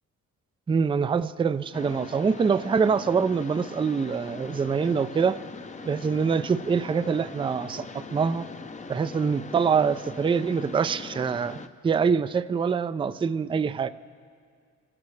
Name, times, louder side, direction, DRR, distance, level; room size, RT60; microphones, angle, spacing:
voice 1, 0.7-5.4 5.8-8.4 8.9-13.9, right 6 dB, 15° right, 12 dB, 0.4 m, -25 dB
Mechanisms, 1.7-11.7, left 4 dB, 25° left, 0.6 m, -41 dB
25.5 x 15.5 x 3.3 m, 2.2 s
cardioid pair, 90°, 30 cm